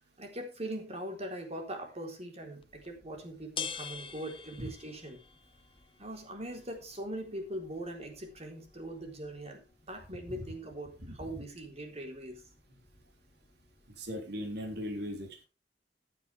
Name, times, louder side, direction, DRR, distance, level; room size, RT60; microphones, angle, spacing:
voice 1, 0.2-5.2 6.0-12.5, right 1 dB, 35° right, 3 dB, 3.9 m, -41 dB
sound 1, 2.6-14.1, left 6 dB, 30° left, 1.0 m, -49 dB
voice 2, 11.0-11.4 14.0-15.5, equal, 65° right, 3 dB, 3.6 m, -39 dB
14.5 x 9.9 x 3.5 m, 0.29 s
head